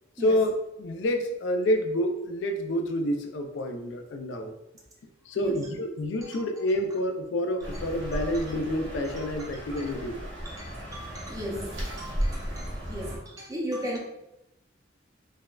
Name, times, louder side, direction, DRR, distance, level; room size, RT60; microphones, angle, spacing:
voice 1, 0.2-4.5 5.3-10.2, left 1 dB, 75° left, 4 dB, 0.3 m, -28 dB
voice 2, 5.3-5.7 6.2-6.4 8.2-8.4 9.1-9.3 9.8-9.9 10.4-14.0, equal, 20° right, -2 dB, 0.4 m, -37 dB
sound 1, 7.6-13.2, equal, 70° right, 0.7 m, -35 dB
3.4 x 2.1 x 2.2 m, 0.87 s
head